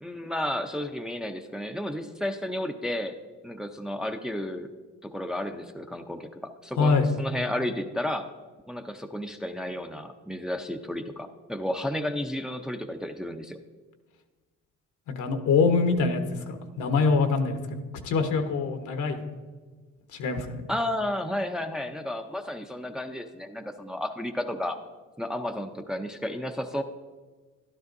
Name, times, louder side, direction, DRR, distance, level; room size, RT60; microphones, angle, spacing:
voice 1, 0.0-3.2 3.4-4.7 5.0-8.3 8.7-13.6 20.7-24.8 25.2-26.8, left 1 dB, ahead, 5 dB, 0.5 m, -32 dB
voice 2, 6.8-7.1 15.2-17.8 18.0-19.2 20.1-20.6, left 4 dB, 80° left, 6 dB, 1.1 m, -24 dB
12.5 x 12.0 x 2.6 m, 1.4 s
cardioid pair, 90°, 30 cm